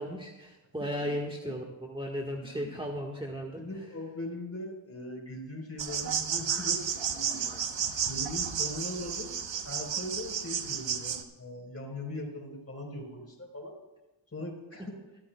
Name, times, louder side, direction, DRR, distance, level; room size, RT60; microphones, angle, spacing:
voice 1, 0.0-3.6, equal, 10° right, -1 dB, 1.5 m, -35 dB
voice 2, 2.4-2.8 3.6-7.6 8.0-9.3 9.6-13.8 14.3-14.9, left 1 dB, 30° left, 1 dB, 4.3 m, -40 dB
sound 1, 5.8-11.2, right 7 dB, 65° right, 1.1 m, -32 dB
22.0 x 13.0 x 2.3 m, 1.0 s
cardioid pair, 65°, 48 cm